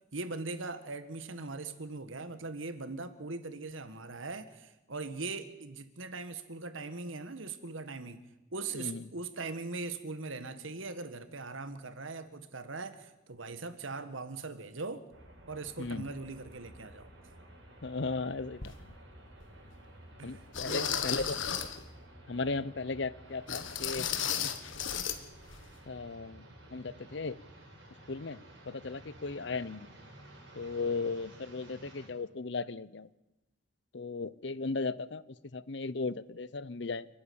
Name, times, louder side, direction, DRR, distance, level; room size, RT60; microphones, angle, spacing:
voice 1, 0.1-8.2 8.5-15.0 15.5-17.1 20.2-21.0, right 3 dB, 85° right, 11 dB, 1.6 m, -40 dB
sound 1, 15.1-32.1, right 1 dB, 65° right, 6.5 m, -53 dB
voice 2, 15.8-16.1 17.8-18.9 20.2-21.4 22.3-24.1 24.4-24.5 25.9-27.3 28.1-29.9 30.5-33.1 33.9-35.2 35.5-37.1, left 3 dB, 60° left, 18 dB, 0.7 m, -36 dB
sound 2, 18.6-18.7 19.4-19.5 20.5-21.8 23.5-25.2 25.5-25.6 26.1-26.2, left 8 dB, 80° left, 1.6 m, -34 dB
30.0 x 10.0 x 8.7 m, 1.0 s
head